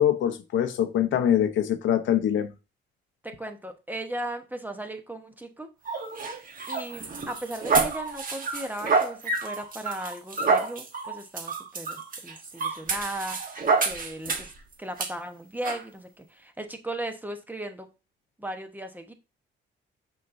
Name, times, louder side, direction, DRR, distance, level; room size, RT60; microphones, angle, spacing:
voice 1, 0.0-2.5, left 10 dB, 75° left, 0.8 m, -23 dB
voice 2, 3.2-5.7 6.7-14.5 14.8-17.9 18.4-19.1, right 1 dB, 10° right, 1.0 m, -37 dB
sound 1, 5.9-14.6 15.0-15.1 15.6-15.8, right 4 dB, 45° right, 1.3 m, -28 dB
6.3 x 5.7 x 2.6 m
cardioid pair, 90°, 20 cm